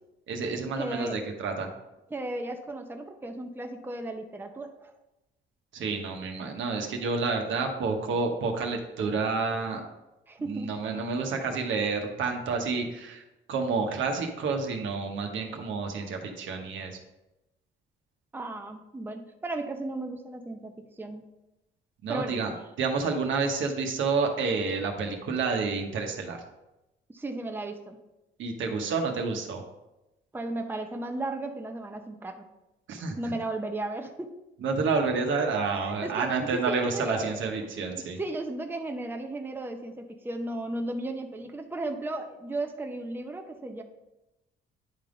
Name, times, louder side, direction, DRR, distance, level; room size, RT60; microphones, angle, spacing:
voice 1, 0.3-1.7 5.7-9.8 10.5-13.2 13.5-17.0 22.0-26.4 28.4-29.6 32.9-33.2 34.6-38.2, right 4 dB, 75° right, 3 dB, 1.1 m, -29 dB
voice 2, 0.8-1.3 2.1-4.9 10.3-10.7 18.3-21.3 22.1-22.4 27.1-28.0 30.3-32.4 33.2-34.3 35.7-43.8, right 2 dB, 10° right, 4 dB, 0.6 m, -35 dB
10.0 x 3.5 x 3.8 m, 0.96 s
cardioid pair, 90°, 20 cm